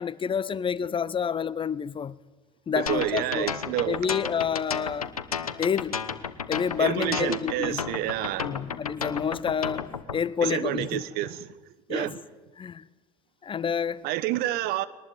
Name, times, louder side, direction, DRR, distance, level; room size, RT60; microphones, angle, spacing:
voice 1, 0.0-2.2 2.7-3.5 3.9-5.1 5.6-6.0 6.5-7.9 8.4-9.9 10.1-11.0 11.9-12.1 12.6-12.8 13.4-14.1, left 7 dB, 30° left, 0.8 m, -28 dB
sound 1, 2.9-10.2, left 7 dB, 90° left, 1.1 m, -32 dB
voice 2, 2.9-4.0 6.8-8.5 10.5-11.5 11.9-12.2 14.0-14.9, right 14 dB, 60° right, 1.3 m, -29 dB
21.5 x 19.0 x 9.6 m
hypercardioid pair, 70°, 18 cm